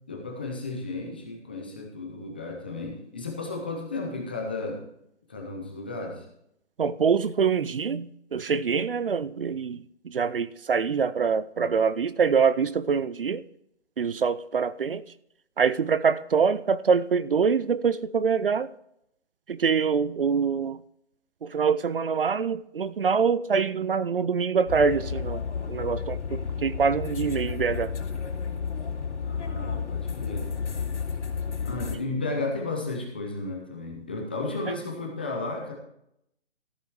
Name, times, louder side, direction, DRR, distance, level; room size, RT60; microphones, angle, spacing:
voice 1, 0.0-4.8 5.3-6.3 29.2-30.5 31.6-35.7, left 3 dB, 10° left, 0.6 m, -33 dB
voice 2, 6.8-13.4 14.0-15.0 15.6-18.7 19.5-20.8 21.4-25.4 25.7-27.9, right 6 dB, 55° right, 0.6 m, -25 dB
sound 1, 24.7-32.0, left 6 dB, 80° left, 3.0 m, -32 dB
14.0 x 7.3 x 4.7 m
hypercardioid pair, 165°, 35 cm